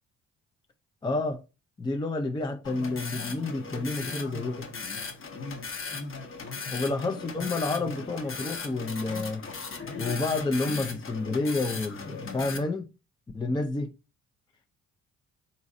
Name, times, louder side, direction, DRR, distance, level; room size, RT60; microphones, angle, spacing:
voice 1, 1.0-1.4 1.8-4.7 6.7-9.4 10.0-12.9 13.3-13.9, left 2 dB, 15° left, 0.4 m, -30 dB
sound 1, 2.6-12.6, left 4 dB, 45° left, 0.9 m, -37 dB
4.1 x 3.8 x 2.5 m
cardioid pair, 90°, 30 cm